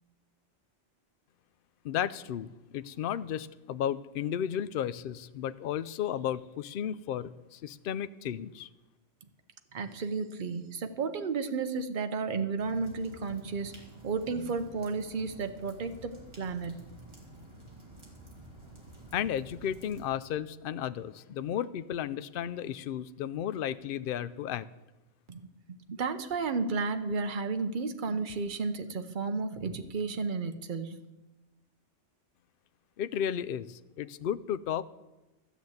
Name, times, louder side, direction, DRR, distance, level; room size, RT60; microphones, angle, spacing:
voice 1, 1.8-8.7 19.1-24.7 33.0-34.9, left 9 dB, 60° left, 15 dB, 0.6 m, -34 dB
voice 2, 9.7-16.8 25.3-25.4 25.7-31.0, right 4 dB, 45° right, 8 dB, 0.9 m, -33 dB
sound 1, 12.6-20.0, right 1 dB, 25° right, 2.5 m, -51 dB
13.0 x 7.1 x 7.9 m, 1.1 s
omnidirectional pair, 1.2 m